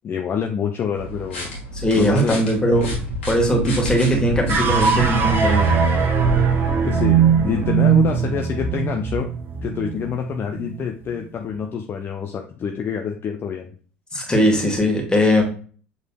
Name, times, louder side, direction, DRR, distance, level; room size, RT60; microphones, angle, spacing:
voice 1, 0.0-1.5 1.9-2.4 6.8-9.3 9.6-13.7, left 7 dB, 35° left, 4 dB, 0.5 m, -26 dB
sound 1, 1.0-5.9, left 1 dB, 80° left, 1.5 m, -34 dB
voice 2, 1.7-2.9 3.3-5.7 14.1-15.4, equal, 10° left, 0 dB, 1.5 m, -19 dB
sound 2, 2.7-7.8, left 1 dB, 70° right, 0.7 m, -29 dB
sound 3, 4.5-10.9, right 7 dB, 35° right, 0.9 m, -20 dB
6.6 x 3.2 x 2.2 m, 0.41 s
figure-of-eight pair, 65°, 6 cm